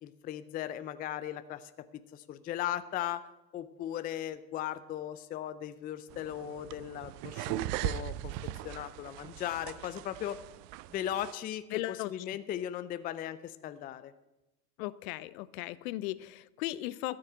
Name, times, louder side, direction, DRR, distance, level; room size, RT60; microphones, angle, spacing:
voice 1, 0.0-1.9 2.1-3.2 3.5-10.4 10.9-14.1, left 11 dB, 20° left, 13 dB, 0.4 m, -38 dB
sound 1, 6.1-11.3, right 15 dB, 40° right, 0.5 m, -39 dB
voice 2, 11.7-12.1 14.8-17.2, left 17 dB, 55° left, 18 dB, 0.7 m, -37 dB
13.5 x 6.5 x 8.5 m, 0.95 s
hypercardioid pair, 90°, 50 cm